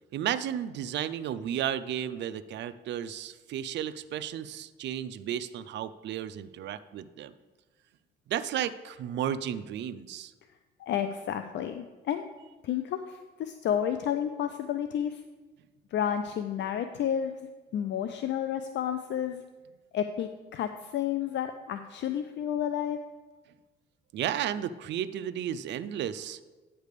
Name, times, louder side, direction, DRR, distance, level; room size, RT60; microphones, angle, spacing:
voice 1, 0.1-7.3 8.3-10.3 24.1-26.4, right 10 dB, 65° right, 12 dB, 0.4 m, -33 dB
voice 2, 10.8-12.3 12.6-15.2 15.9-17.3 17.7-19.4 19.9-23.0, left 9 dB, 65° left, 8 dB, 0.4 m, -31 dB
9.2 x 3.3 x 6.6 m, 1.3 s
cardioid pair, 90°, 20 cm